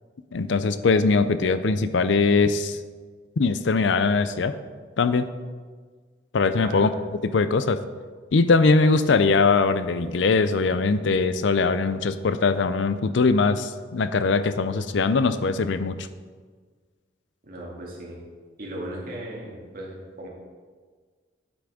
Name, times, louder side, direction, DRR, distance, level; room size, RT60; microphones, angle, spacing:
voice 1, 0.3-2.8 3.4-4.6 5.0-5.3 6.3-6.9 7.2-7.8 8.3-16.1, left 4 dB, 70° left, 12 dB, 0.5 m, -21 dB
voice 2, 6.5-6.9 17.4-18.2 18.6-20.3, right 1 dB, 50° right, -4 dB, 2.2 m, -37 dB
8.8 x 6.0 x 4.9 m, 1.5 s
head